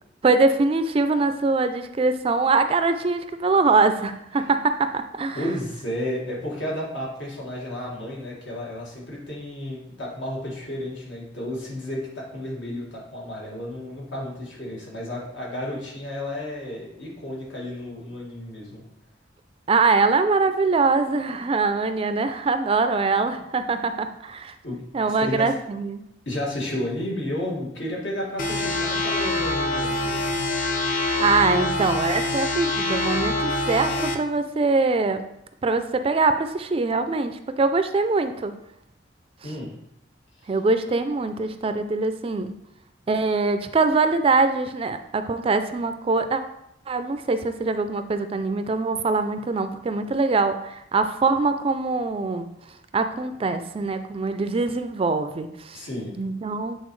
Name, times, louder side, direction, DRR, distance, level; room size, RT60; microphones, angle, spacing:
voice 1, 0.2-5.4 19.7-24.5 24.9-26.0 31.2-35.2 35.6-38.5 40.5-42.5 43.1-46.4 46.9-52.5 52.9-55.8 56.2-56.8, right 3 dB, 30° right, 9 dB, 0.4 m, -23 dB
voice 2, 5.3-18.8 24.6-24.8 25.1-25.5 26.3-30.4 39.4-39.7 55.7-56.1, left 1 dB, 80° left, -3 dB, 1.9 m, -32 dB
sound 1, 28.4-34.1, left 2 dB, 45° left, 0.6 m, -25 dB
8.2 x 4.0 x 3.1 m, 0.81 s
head